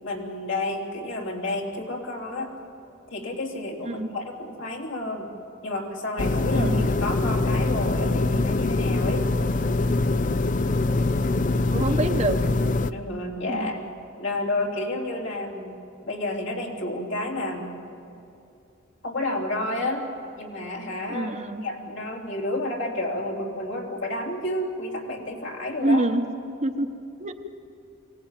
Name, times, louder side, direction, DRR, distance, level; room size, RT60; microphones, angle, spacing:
voice 1, 0.0-2.5 3.1-5.3 5.6-9.3 12.9-13.8 14.2-15.8 16.1-17.7 19.0-20.1 20.4-21.3 21.6-26.1, left 1 dB, 70° left, -1 dB, 3.3 m, -30 dB
sound 1, 6.2-12.9, left 2 dB, 40° left, 0.5 m, -23 dB
voice 2, 6.5-6.8 11.7-12.4 13.5-13.7 21.1-21.6 25.8-26.9 27.2-27.3, right 1 dB, 35° right, 6 dB, 1.0 m, -26 dB
23.5 x 18.0 x 9.1 m, 2.7 s
head